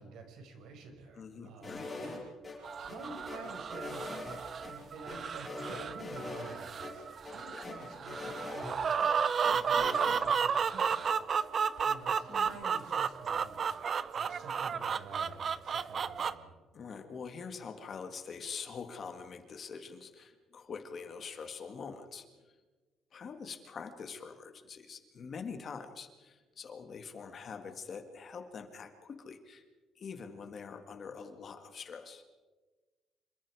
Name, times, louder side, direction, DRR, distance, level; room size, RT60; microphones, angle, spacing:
voice 1, 0.0-2.2 2.8-11.2 11.5-16.5, right 4 dB, 70° right, 4 dB, 5.4 m, -50 dB
voice 2, 1.2-2.3 7.5-7.7 9.7-9.9 12.3-12.6 16.7-22.5 23.1-29.6 30.0-32.2, left 5 dB, 35° left, 7 dB, 1.9 m, -45 dB
sound 1, 1.6-2.6 2.9-4.7 5.1-6.6 6.8-6.9 7.2-9.1 9.4-10.2, left 3 dB, 15° left, 7.8 m, -42 dB
sound 2, 2.6-16.3, right 6 dB, 35° right, 0.7 m, -32 dB
27.0 x 24.5 x 4.9 m, 1.3 s
cardioid pair, 165°, 0 cm